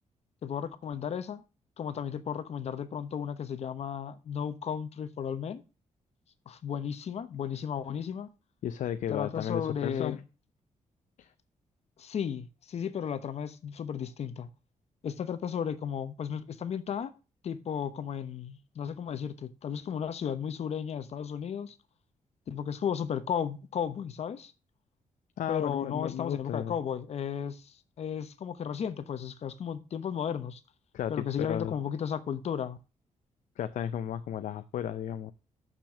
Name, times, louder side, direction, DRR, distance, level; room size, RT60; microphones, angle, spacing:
voice 1, 0.4-1.4 1.8-5.6 6.5-8.3 9.1-10.2 12.0-14.5 15.0-17.1 17.4-21.7 22.5-24.5 25.5-30.6 31.1-32.8, left 8 dB, 55° left, 1.0 m, -34 dB
voice 2, 8.6-10.2 11.2-11.3 25.4-26.7 30.9-31.7 33.6-35.3, left 10 dB, 75° left, 0.6 m, -34 dB
6.8 x 6.0 x 7.3 m
wide cardioid pair, 135°, 13 cm